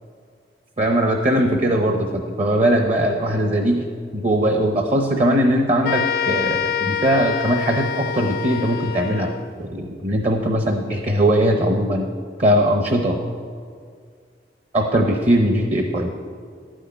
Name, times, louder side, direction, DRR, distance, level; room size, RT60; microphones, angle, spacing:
voice 1, 0.8-3.8 4.1-9.3 9.6-12.1 12.4-13.2 14.7-16.1, right 1 dB, 40° right, 3 dB, 0.8 m, -20 dB
sound 1, 5.8-9.5, left 8 dB, 60° left, 0.5 m, -26 dB
12.0 x 6.4 x 9.3 m, 2.1 s
head